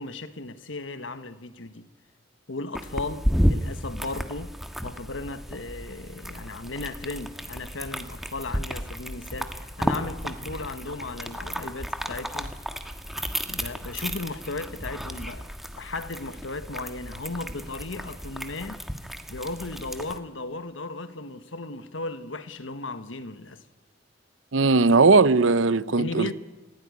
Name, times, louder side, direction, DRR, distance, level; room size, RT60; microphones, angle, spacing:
voice 1, 0.0-1.9 2.5-4.6 4.8-12.6 13.4-18.8 19.3-23.6 25.9-26.3, left 3 dB, 80° left, 1.5 m, -36 dB
sound 1, 2.7-20.2, equal, ahead, 1.5 m, -32 dB
voice 2, 24.5-26.3, right 3 dB, 80° right, 0.8 m, -18 dB
26.5 x 17.0 x 9.7 m
head